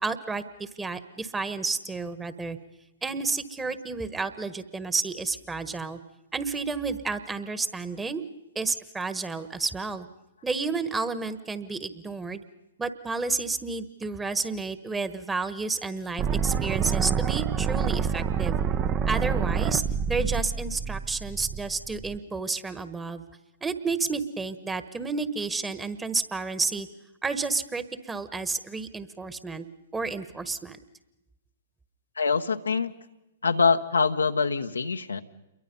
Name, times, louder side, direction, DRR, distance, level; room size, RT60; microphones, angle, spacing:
voice 1, 0.0-2.6 3.0-6.0 6.3-8.2 8.5-10.1 10.4-12.4 12.8-18.6 19.1-19.8 20.1-23.2 23.6-26.9 27.2-29.7 29.9-30.8, right 4 dB, 10° right, 12 dB, 1.4 m, -31 dB
sound 1, 16.2-22.2, right 7 dB, 25° right, 0.8 m, -27 dB
voice 2, 32.2-32.9 33.4-35.2, left 5 dB, 90° left, 6 dB, 1.2 m, -24 dB
28.5 x 23.0 x 5.5 m, 0.94 s
hypercardioid pair, 120°, 0 cm